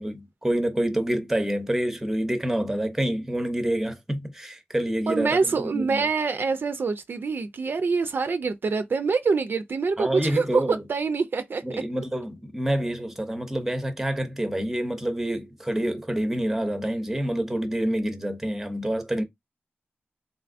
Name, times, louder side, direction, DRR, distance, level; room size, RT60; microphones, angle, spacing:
voice 1, 0.0-6.1 10.0-10.8 11.6-19.2, right 1 dB, 5° right, 0.6 m, -27 dB
voice 2, 5.1-11.6, right 4 dB, 55° right, 0.3 m, -25 dB
3.4 x 2.6 x 2.5 m
wide cardioid pair, 115°, 4 cm